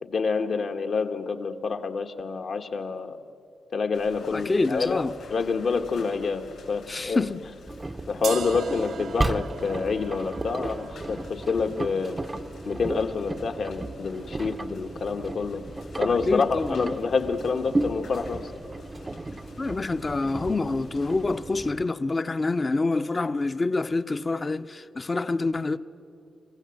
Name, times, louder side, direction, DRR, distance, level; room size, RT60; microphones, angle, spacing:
voice 1, 0.0-3.2 3.7-5.0 5.3-7.2 8.1-12.2 12.6-15.6 16.0-18.5, left 4 dB, 65° left, 1.4 m, -27 dB
sound 1, 3.9-21.7, left 3 dB, 80° left, 6.8 m, -49 dB
voice 2, 4.3-5.1 6.9-7.4 9.2-9.3 16.1-17.0 19.6-25.8, left 3 dB, 30° left, 0.7 m, -27 dB
Engine, 7.7-21.8, right 2 dB, 25° right, 0.6 m, -34 dB
sound 2, 8.2-14.2, right 7 dB, 75° right, 0.8 m, -41 dB
26.5 x 16.0 x 7.8 m
cardioid pair, 75°, 0 cm